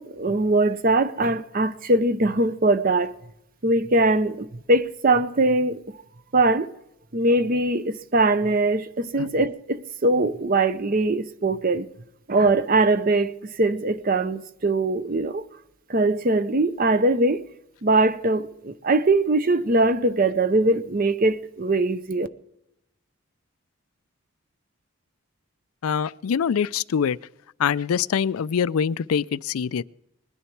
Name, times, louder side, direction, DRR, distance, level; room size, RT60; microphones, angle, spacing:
voice 1, 0.0-3.1 3.6-5.8 6.3-6.7 7.1-11.9 12.3-15.4 15.9-17.4 17.8-22.3, right 2 dB, 40° right, 0.7 m, -21 dB
voice 2, 25.8-27.2 27.6-29.8, left 7 dB, 80° left, 0.4 m, -24 dB
20.5 x 10.0 x 4.6 m
head